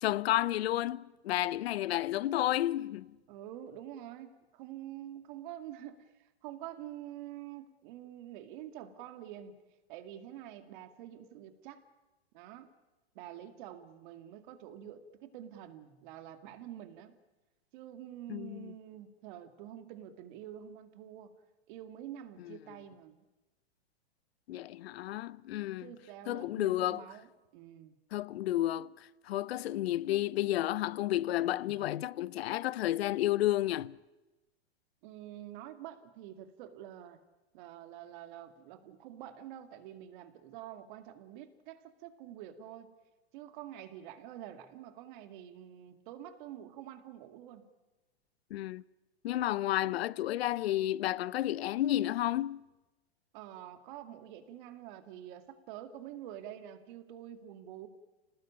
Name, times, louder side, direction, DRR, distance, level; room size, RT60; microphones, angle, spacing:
voice 1, 0.0-3.1 18.3-18.7 22.5-22.6 24.5-25.9 26.3-27.0 28.1-28.9 29.3-34.0 48.5-48.8 49.2-52.6, left 14 dB, 70° left, 0.7 m, -31 dB
voice 2, 3.3-6.1 6.4-9.5 9.9-11.8 12.3-12.7 13.1-17.2 17.7-21.3 21.7-23.2 25.8-27.3 27.5-27.9 35.0-37.2 37.5-43.0 43.3-47.6 53.3-57.9, right 11 dB, 50° right, 2.3 m, -47 dB
27.0 x 18.5 x 8.7 m
hypercardioid pair, 140°, 32 cm